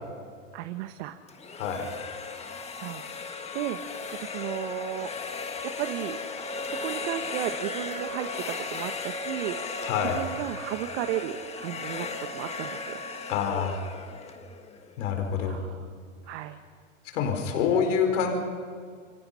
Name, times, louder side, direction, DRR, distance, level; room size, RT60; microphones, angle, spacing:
voice 1, 0.5-1.2 2.5-5.1 5.6-6.2 6.5-13.0 15.4-15.9 16.3-16.6, right 13 dB, 60° right, 7 dB, 1.5 m, -35 dB
sound 1, 1.3-15.1, left 4 dB, 15° left, 1.6 m, -36 dB
voice 2, 1.5-1.9 9.8-10.2 13.3-13.8 15.0-15.6 17.1-18.3, left 7 dB, 65° left, 4 dB, 4.3 m, -26 dB
28.5 x 23.5 x 5.8 m, 2.1 s
hypercardioid pair, 125°, 39 cm